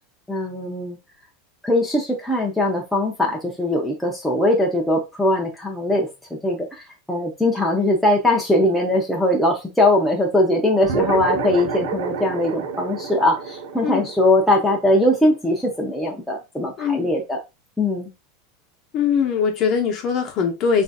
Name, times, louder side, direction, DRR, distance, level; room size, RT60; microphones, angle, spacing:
voice 1, 0.3-1.0 1.6-6.1 6.4-6.7 7.1-17.4 17.8-18.1, left 1 dB, ahead, 0.5 m, -20 dB
sound 1, 10.8-15.6, right 5 dB, 80° right, 0.6 m, -28 dB
voice 2, 16.8-17.1 18.9-20.8, left 6 dB, 35° left, 0.8 m, -21 dB
3.8 x 2.5 x 2.2 m
supercardioid pair, 155°, 0 cm